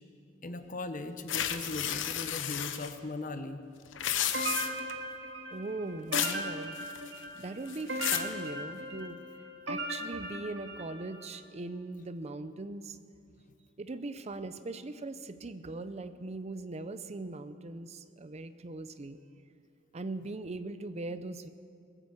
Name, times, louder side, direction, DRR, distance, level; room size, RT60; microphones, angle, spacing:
voice 1, 0.4-3.6, left 2 dB, 45° left, 9 dB, 1.0 m, -39 dB
sound 1, 1.3-2.9 3.9-4.9 6.1-6.4 6.8-7.2 7.7-8.3, left 10 dB, 85° left, 0.9 m, -32 dB
sound 2, 4.3-11.3, right 1 dB, 80° right, 2.0 m, -38 dB
voice 2, 5.5-6.8 7.4-9.2 9.7-13.0 13.8-19.2 19.9-21.5, right 2 dB, 35° right, 12 dB, 0.5 m, -40 dB
20.5 x 9.0 x 7.7 m, 2.4 s
head